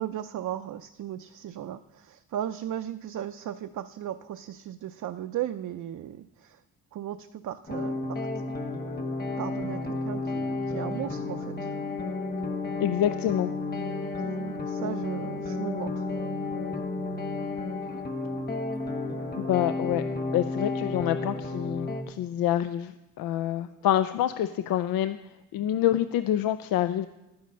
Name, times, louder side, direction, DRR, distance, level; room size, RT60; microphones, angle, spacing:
voice 1, 0.0-6.6 6.9-8.3 9.4-11.7 14.2-16.1, right 11 dB, 60° right, 8 dB, 0.5 m, -36 dB
sound 1, 7.7-22.0, left 3 dB, 30° left, 1.4 m, -32 dB
voice 2, 12.8-13.5 19.4-20.0 20.3-25.2 25.5-27.1, left 11 dB, 90° left, 12 dB, 0.5 m, -27 dB
11.0 x 9.5 x 5.2 m, 0.98 s
cardioid pair, 95°, 34 cm